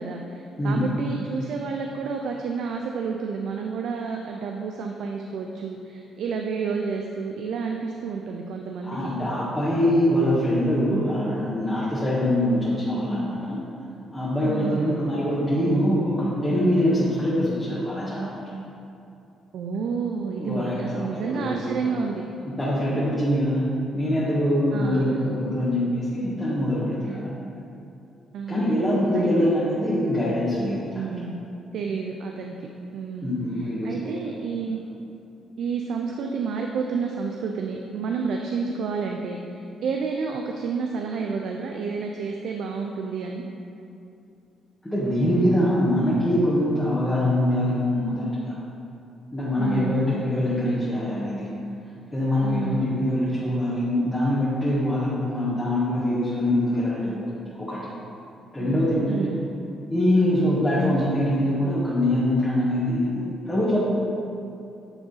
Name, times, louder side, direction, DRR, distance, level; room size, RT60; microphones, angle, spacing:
voice 1, 0.0-9.1 14.4-15.0 19.5-22.3 24.7-25.2 28.3-28.8 29.2-29.5 30.9-31.4 31.7-33.3 33.8-34.8 35.6-43.4 49.6-50.0 52.4-52.9 58.6-59.4, right 5 dB, 75° right, 2 dB, 0.4 m, -30 dB
voice 2, 0.6-0.9 8.8-13.6 14.1-18.4 20.4-21.7 22.4-23.6 23.9-27.3 28.5-31.1 33.2-34.3 44.8-48.6 49.3-51.5 52.1-57.2 57.5-57.9 58.5-59.3 59.9-63.8, left 1 dB, 10° left, -9 dB, 1.4 m, -24 dB
8.9 x 3.6 x 4.1 m, 2.7 s
cardioid pair, 90°, 0 cm